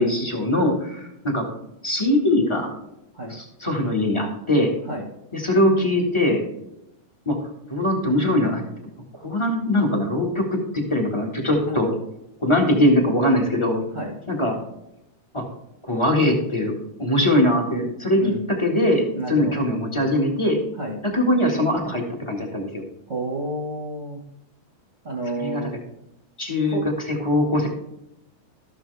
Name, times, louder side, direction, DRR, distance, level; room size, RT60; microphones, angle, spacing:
voice 1, 0.0-1.4 1.8-2.7 3.3-4.7 5.3-6.4 7.2-7.4 7.7-8.6 9.2-11.9 12.4-13.8 14.3-14.5 15.3-15.4 15.9-16.7 17.0-18.2 18.6-20.6 21.0-22.8 25.4-25.6 26.4-26.8 27.2-27.7, left 1 dB, 15° left, 0 dB, 1.0 m, -21 dB
voice 2, 19.1-19.5 20.8-21.0 23.1-24.2 25.0-25.7 26.7-26.8, right 1 dB, 35° right, -1 dB, 1.2 m, -30 dB
13.5 x 7.2 x 3.4 m, 0.86 s
omnidirectional pair, 3.8 m